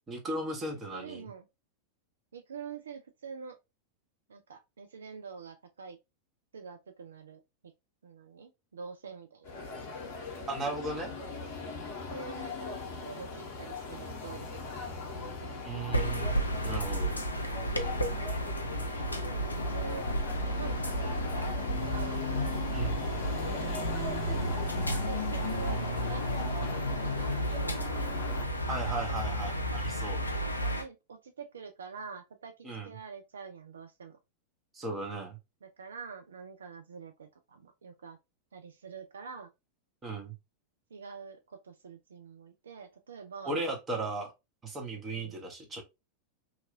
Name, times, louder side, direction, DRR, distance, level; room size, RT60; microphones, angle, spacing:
voice 1, 0.1-1.3 10.5-11.1 15.6-16.4 16.6-17.2 22.7-23.0 28.7-30.2 32.6-32.9 34.7-35.4 40.0-40.3 43.4-44.3 44.6-45.8, right 2 dB, 20° right, 0.9 m, -36 dB
voice 2, 0.9-1.5 2.3-3.6 4.3-6.0 6.5-7.4 8.0-9.6 12.1-12.7 13.0-16.0 19.0-20.0 20.4-22.2 23.5-28.0 29.2-29.8 30.6-34.2 35.6-38.2 38.5-39.5 40.9-43.6 45.1-45.4, right 6 dB, 70° right, 0.3 m, -46 dB
sound 1, 9.4-28.4, left 4 dB, 50° left, 0.8 m, -39 dB
sound 2, 15.9-30.8, equal, 85° left, 0.4 m, -32 dB
2.8 x 2.4 x 2.5 m
figure-of-eight pair, 90°, 0 cm